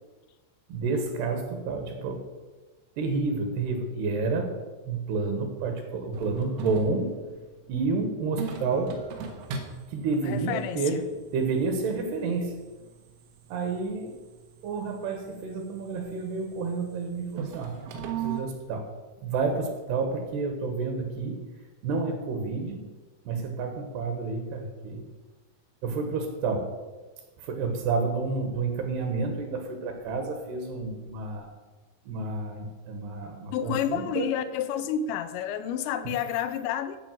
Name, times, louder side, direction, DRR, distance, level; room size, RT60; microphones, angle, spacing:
voice 1, 0.7-2.2 3.0-4.5 4.9-7.1 7.7-9.0 9.9-11.0 11.3-12.6 13.5-14.2 14.6-17.8 18.1-18.8 19.2-21.4 21.8-22.8 23.3-25.0 25.8-26.7 27.4-31.5 32.1-34.3, right 4 dB, 70° right, 5 dB, 3.0 m, -30 dB
sound 1, 6.1-18.4, right 6 dB, 90° right, 3.7 m, -40 dB
voice 2, 10.2-11.0 33.5-37.0, left 9 dB, 85° left, 11 dB, 2.8 m, -30 dB
14.0 x 5.0 x 7.7 m, 1.3 s
omnidirectional pair, 5.2 m